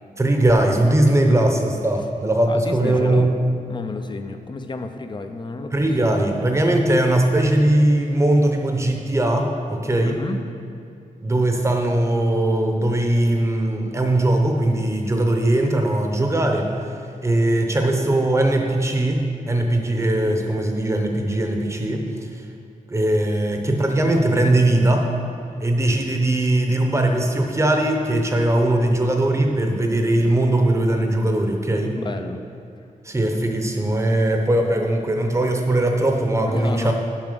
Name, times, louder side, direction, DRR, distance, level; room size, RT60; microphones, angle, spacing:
voice 1, 0.2-3.4 5.7-10.2 11.2-16.9 17.2-22.0 22.3-22.4 22.9-25.1 25.6-32.0 33.0-36.9, right 1 dB, 20° right, 3 dB, 0.8 m, -20 dB
voice 2, 2.5-3.3 3.6-5.9 10.0-10.4 32.0-32.4 32.8-32.9 36.5-36.9, left 3 dB, 35° left, 7 dB, 0.5 m, -31 dB
7.2 x 5.9 x 6.7 m, 2.5 s
wide cardioid pair, 160°, 14 cm